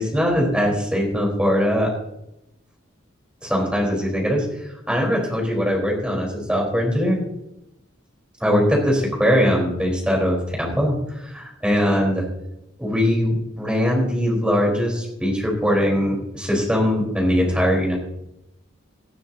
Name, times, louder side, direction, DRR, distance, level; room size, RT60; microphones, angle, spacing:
voice 1, 0.0-1.9 3.4-7.2 8.4-12.2 12.8-18.0, equal, 5° right, -2 dB, 4.2 m, -21 dB
19.0 x 12.5 x 2.8 m, 0.85 s
head